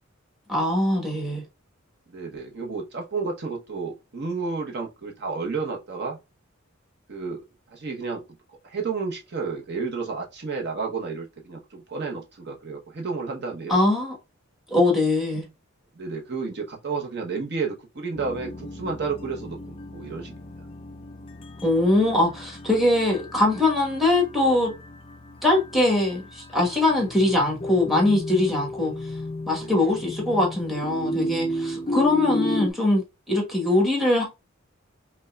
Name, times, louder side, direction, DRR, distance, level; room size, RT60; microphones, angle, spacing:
voice 1, 0.5-1.4 13.7-14.1 14.7-15.5 21.6-24.7 25.4-29.1 29.5-34.2, left 2 dB, ahead, 1.2 m, -22 dB
voice 2, 2.1-6.2 7.1-7.4 7.7-8.2 8.6-13.8 16.0-20.3 29.6-29.9, right 4 dB, 55° right, 0.9 m, -31 dB
Crystal Bowls Gong and Voice, 18.2-32.7, left 1 dB, 25° left, 0.4 m, -33 dB
5.2 x 2.3 x 2.3 m
head